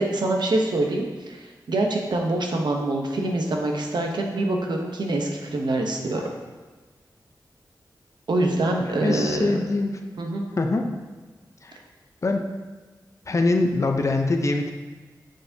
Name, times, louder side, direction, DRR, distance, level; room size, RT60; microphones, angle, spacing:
voice 1, 0.0-6.2 8.3-9.6 10.2-10.5, right 2 dB, 75° right, 1 dB, 0.9 m, -25 dB
voice 2, 8.9-10.0 10.6-10.9 11.6-11.8 12.2-12.5 13.3-14.7, left 2 dB, 40° left, 4 dB, 0.6 m, -23 dB
6.7 x 6.2 x 2.8 m, 1.3 s
wide cardioid pair, 115°, 7 cm